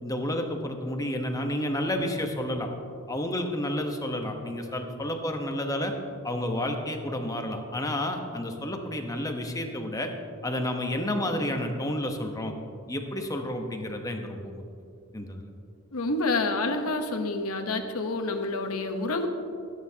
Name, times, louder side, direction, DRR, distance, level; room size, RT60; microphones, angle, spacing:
voice 1, 0.0-2.7 3.1-5.9 6.2-10.1 10.4-12.5 12.9-14.6 15.1-15.4, left 1 dB, 15° left, 4 dB, 1.0 m, -30 dB
voice 2, 15.9-19.3, left 2 dB, 75° left, 5 dB, 1.0 m, -28 dB
22.5 x 9.4 x 2.9 m, 2.5 s
head